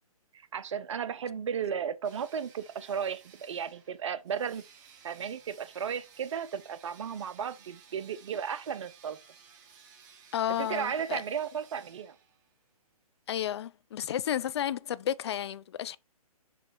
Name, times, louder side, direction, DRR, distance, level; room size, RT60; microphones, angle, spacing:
voice 1, 0.3-4.6 5.0-9.2 10.6-12.2, right 7 dB, 55° right, 0.7 m, -34 dB
sound 1, 2.0-12.6, right 7 dB, 30° right, 1.1 m, -57 dB
voice 2, 10.3-11.2 13.3-16.0, left 10 dB, 45° left, 0.4 m, -32 dB
6.8 x 3.2 x 4.5 m
figure-of-eight pair, 140°, 19 cm